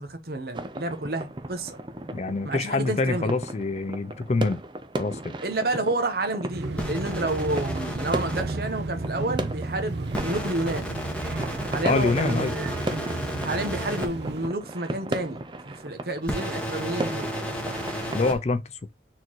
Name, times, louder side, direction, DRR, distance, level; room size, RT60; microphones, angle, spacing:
voice 1, 0.0-1.8 2.4-3.3 5.4-11.0 11.7-12.7 13.4-17.3, right 2 dB, 55° right, 1.1 m, -30 dB
sound 1, 0.5-18.3, right 2 dB, 25° right, 0.5 m, -36 dB
voice 2, 2.1-4.6 5.0-5.3 11.8-12.5 18.1-18.9, left 3 dB, 35° left, 0.4 m, -26 dB
sound 2, 6.5-14.5, right 2 dB, 75° right, 0.6 m, -33 dB
sound 3, 6.8-8.4 10.1-14.1 16.2-18.4, equal, 5° left, 1.3 m, -33 dB
4.4 x 3.8 x 3.0 m
head